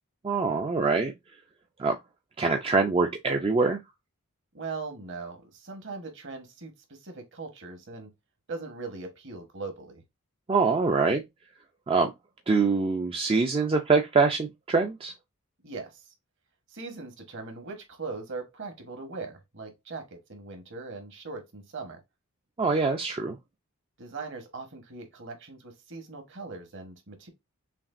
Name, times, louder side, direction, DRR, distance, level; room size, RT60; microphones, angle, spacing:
voice 1, 0.2-1.1 1.8-2.0 2.4-3.8 10.5-11.2 11.9-12.1 12.5-15.1 22.6-23.4, right 4 dB, 25° right, 0.3 m, -24 dB
voice 2, 4.5-8.1 8.5-10.0 15.6-16.1 16.7-22.0 24.0-27.3, right 3 dB, 55° right, 1.1 m, -40 dB
5.8 x 2.4 x 2.5 m
head